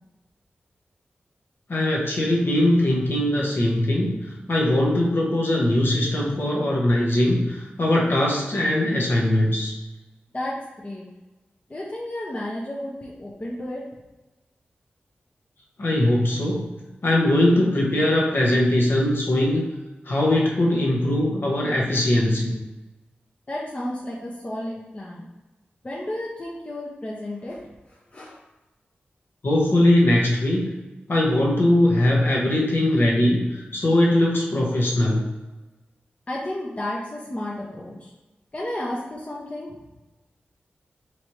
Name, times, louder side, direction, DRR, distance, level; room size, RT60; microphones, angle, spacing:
voice 1, 1.7-9.7 15.8-16.7 17.0-19.6 20.0-22.5 29.4-30.7 31.1-35.3, left 1 dB, 65° left, -3 dB, 1.1 m, -21 dB
voice 2, 10.3-11.1 11.7-13.8 23.5-25.3 25.8-27.6 27.9-28.4 36.3-38.1 38.5-39.8, left 1 dB, 35° left, -5 dB, 0.7 m, -32 dB
4.1 x 3.3 x 3.0 m, 1.1 s
cardioid pair, 50°, 4 cm